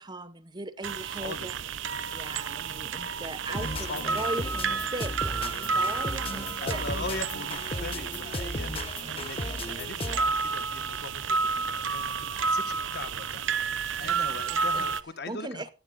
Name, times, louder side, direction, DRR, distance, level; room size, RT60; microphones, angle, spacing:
voice 1, 0.0-1.5 2.1-6.8 14.0-14.2 14.5-14.9 15.3-15.7, right 2 dB, 20° right, 0.7 m, -39 dB
sound 1, 0.8-15.0, right 5 dB, 60° right, 0.8 m, -31 dB
voice 2, 1.1-1.5 3.5-4.3 6.6-13.4 14.0-15.6, left 3 dB, 50° left, 1.4 m, -40 dB
sound 2, 3.5-10.4, left 2 dB, 25° left, 1.1 m, -36 dB
16.0 x 10.0 x 4.0 m
head